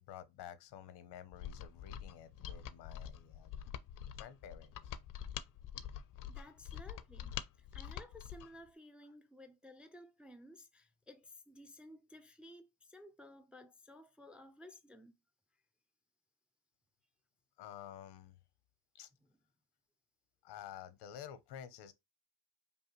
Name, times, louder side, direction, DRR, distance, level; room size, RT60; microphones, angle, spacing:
voice 1, 0.0-3.6 4.2-4.9 7.3-7.4 17.6-18.4 18.9-19.1 20.4-21.9, left 10 dB, 85° left, 0.8 m, -51 dB
Mechanisms, 1.3-8.5, left 9 dB, 55° left, 0.5 m, -46 dB
voice 2, 6.3-15.1, left 1 dB, 5° right, 0.3 m, -56 dB
5.3 x 2.4 x 3.0 m
cardioid pair, 125°, 39 cm